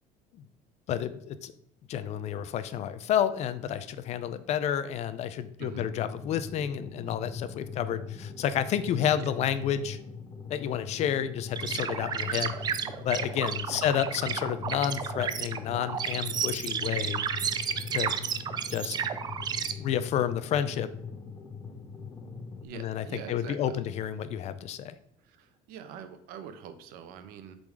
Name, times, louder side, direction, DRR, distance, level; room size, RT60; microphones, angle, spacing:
voice 1, 0.9-1.5 1.9-10.0 10.5-12.5 13.0-17.2 17.9-18.2 18.7-19.0 19.8-20.9 22.7-24.9, left 9 dB, 45° left, 13 dB, 0.5 m, -30 dB
sound 1, 5.7-22.7, left 5 dB, 20° left, 0.9 m, -41 dB
voice 2, 9.0-9.3 13.7-13.8 22.6-23.8 25.3-27.5, right 8 dB, 75° right, 9 dB, 0.9 m, -44 dB
sound 2, 11.5-19.7, right 7 dB, 25° right, 0.4 m, -32 dB
7.3 x 3.9 x 4.8 m, 0.73 s
cardioid pair, 150°, 15 cm